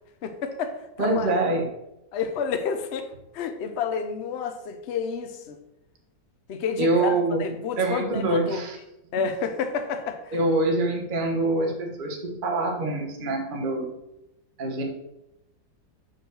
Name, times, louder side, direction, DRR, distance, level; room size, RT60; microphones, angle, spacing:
voice 1, 0.2-1.3 2.1-3.1 3.3-5.6 6.5-7.1 7.4-8.7 9.1-10.5, left 6 dB, 55° left, 7 dB, 0.8 m, -30 dB
voice 2, 1.0-1.7 6.8-8.8 10.3-13.9 14.6-14.8, right 2 dB, 35° right, 1 dB, 1.1 m, -25 dB
5.4 x 4.6 x 6.3 m, 0.89 s
omnidirectional pair, 1.9 m